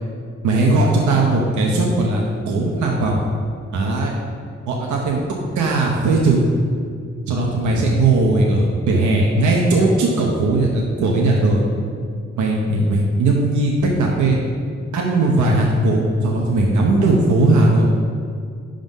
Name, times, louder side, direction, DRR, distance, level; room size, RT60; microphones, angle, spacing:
voice 1, 0.4-3.2 3.7-4.1 4.7-5.2 5.6-6.5 7.3-11.6 12.4-14.4 14.9-18.1, right 2 dB, 80° right, -1 dB, 0.7 m, -18 dB
5.1 x 3.8 x 5.4 m, 2.2 s
supercardioid pair, 50°, 29 cm